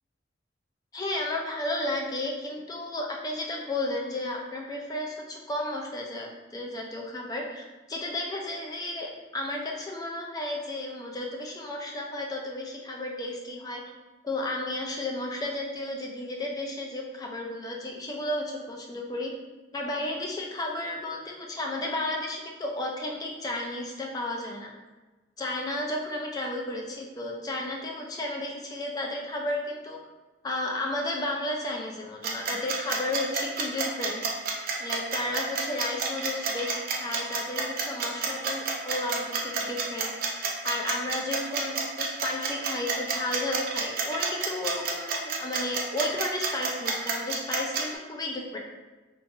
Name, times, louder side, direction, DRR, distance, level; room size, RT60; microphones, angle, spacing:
voice 1, 0.9-13.8 14.2-19.3 19.7-24.7 25.4-30.0 30.4-34.2 34.8-40.1 40.6-48.6, left 1 dB, 20° left, 0 dB, 0.4 m, -33 dB
sound 1, 32.2-47.8, right 5 dB, 50° right, 0.4 m, -29 dB
3.8 x 2.4 x 2.7 m, 1.2 s
head